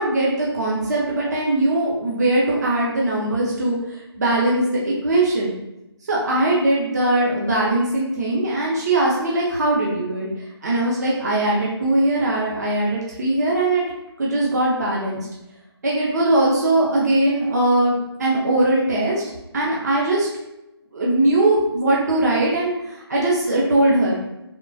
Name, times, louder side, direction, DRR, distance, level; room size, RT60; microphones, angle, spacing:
voice 1, 0.0-5.5 6.0-10.3 10.6-13.8 14.2-15.3 15.8-19.2 19.5-20.3 20.9-24.2, right 1 dB, 40° right, -4 dB, 0.7 m, -20 dB
3.6 x 2.3 x 2.6 m, 0.92 s
figure-of-eight pair, 160°, 14 cm